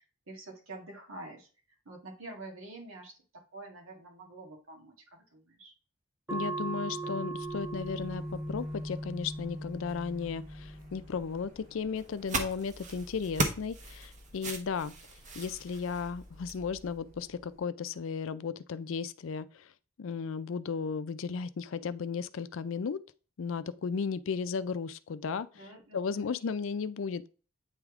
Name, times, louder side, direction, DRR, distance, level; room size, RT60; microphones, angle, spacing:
voice 1, 0.0-1.5 1.9-5.7 25.5-26.4, right 2 dB, 85° right, 1.7 m, -47 dB
voice 2, 6.3-14.9 15.3-19.7 20.0-23.0 23.4-25.7 25.9-27.3, left 5 dB, 75° left, 0.4 m, -35 dB
sound 1, 6.3-11.4, right 2 dB, 10° right, 0.5 m, -38 dB
Printer, 7.3-17.6, left 1 dB, 50° right, 3.3 m, -54 dB
sound 2, 12.0-16.7, right 2 dB, 35° right, 0.9 m, -37 dB
8.7 x 3.5 x 3.6 m
head